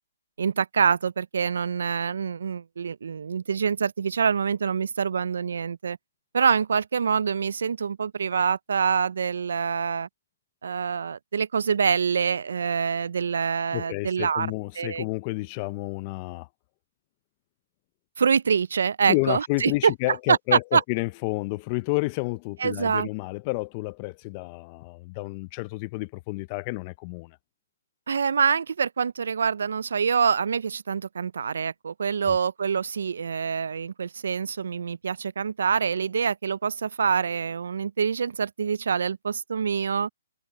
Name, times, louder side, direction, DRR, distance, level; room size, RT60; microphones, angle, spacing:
voice 1, 0.4-6.0 6.3-10.1 10.6-14.5 14.8-15.0 18.2-19.9 20.3-20.8 22.6-23.1 28.1-40.1, right 6 dB, 70° right, 0.3 m, -25 dB
voice 2, 13.7-16.5 19.1-27.4 32.3-32.4, left 23 dB, 25° left, 0.5 m, -30 dB
hypercardioid pair, 165°, 0 cm